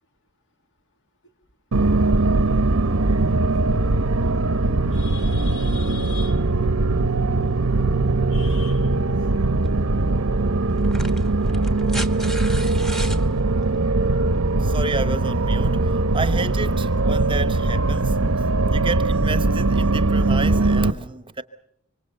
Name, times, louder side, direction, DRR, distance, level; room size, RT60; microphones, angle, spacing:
sound 1, 1.7-20.9, right 2 dB, 80° right, 0.9 m, -20 dB
voice 1, 4.9-6.4 8.3-8.9, left 8 dB, 60° left, 2.0 m, -41 dB
sound 2, 9.6-9.8 10.8-13.2 14.7-14.8, right 1 dB, ahead, 1.1 m, -34 dB
voice 2, 14.6-18.2 18.7-21.4, right 3 dB, 25° right, 0.9 m, -30 dB
25.5 x 25.0 x 6.8 m
head